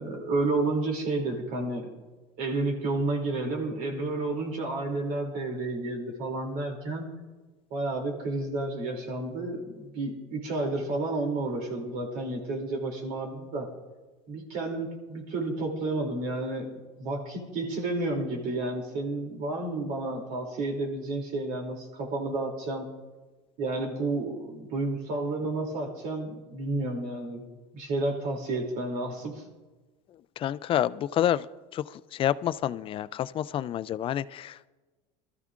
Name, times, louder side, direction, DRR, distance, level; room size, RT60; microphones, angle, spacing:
voice 1, 0.0-1.9 2.4-7.1 7.7-13.7 14.3-22.9 23.6-27.4 27.7-29.4, right 2 dB, 65° right, 2 dB, 2.8 m, -31 dB
voice 2, 30.4-31.5 31.7-31.8 32.1-34.7, left 11 dB, 35° left, 15 dB, 0.4 m, -28 dB
22.5 x 13.5 x 2.5 m, 1.2 s
supercardioid pair, 115°, 16 cm